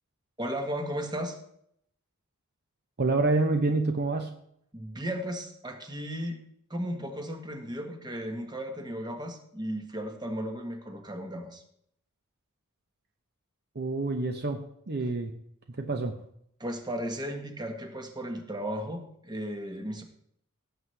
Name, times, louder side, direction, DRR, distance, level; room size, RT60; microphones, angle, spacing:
voice 1, 0.4-1.4 4.7-6.4 6.7-11.6 16.6-20.0, equal, 20° right, 4 dB, 1.4 m, -35 dB
voice 2, 3.0-4.3 13.8-15.3 15.8-16.1, right 3 dB, 50° right, 5 dB, 0.8 m, -27 dB
17.0 x 7.8 x 3.3 m, 0.70 s
head